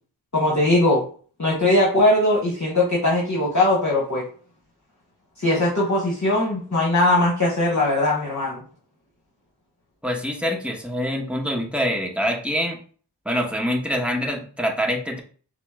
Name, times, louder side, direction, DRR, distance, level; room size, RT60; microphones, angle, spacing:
voice 1, 0.3-1.0 1.4-4.2 5.4-8.6, left 1 dB, 40° left, -4 dB, 1.1 m, -20 dB
voice 2, 10.0-12.8 13.2-15.2, equal, 5° right, 0 dB, 1.1 m, -25 dB
5.8 x 2.1 x 3.6 m, 0.43 s
wide cardioid pair, 50°, 43 cm